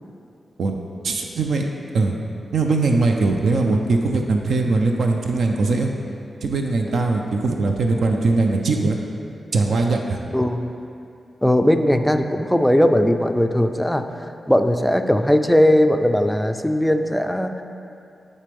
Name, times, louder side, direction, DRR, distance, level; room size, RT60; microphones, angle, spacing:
voice 1, 1.0-1.7 1.9-2.2 2.5-5.9 6.4-9.0 9.5-10.2, right 3 dB, 75° right, 2 dB, 0.5 m, -20 dB
voice 2, 10.3-10.8 11.4-14.0 14.5-17.5, left 1 dB, 5° left, 7 dB, 0.3 m, -18 dB
10.5 x 4.2 x 3.4 m, 2.6 s
wide cardioid pair, 115°, 0 cm